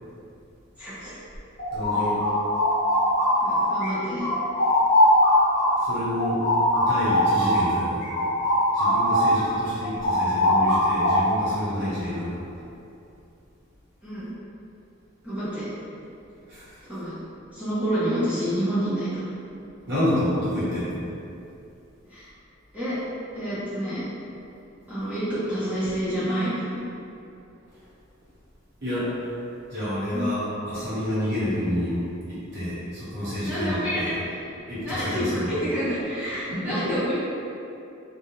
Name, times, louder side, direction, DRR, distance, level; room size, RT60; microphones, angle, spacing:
voice 1, 0.8-1.2 3.4-4.3 14.0-14.3 15.2-15.7 16.9-17.2 17.5-19.3 22.1-22.3 22.7-23.0 23.3-24.0 24.9-26.8 30.1-30.3 33.5-34.3 34.8-37.1, equal, 5° right, -14 dB, 0.6 m, -28 dB
sound 1, 1.3-3.9 4.2-9.4 9.7-11.5, left 1 dB, 35° left, 0.9 m, -21 dB
voice 2, 1.7-2.3 5.8-6.5 6.8-8.1 8.7-12.4 16.5-16.8 19.9-21.0 27.7-27.8 28.8-29.3 29.7-34.2 34.7-35.5 36.5-36.8, left 1 dB, 55° right, -12 dB, 1.1 m, -29 dB
2.4 x 2.1 x 2.9 m, 2.7 s
head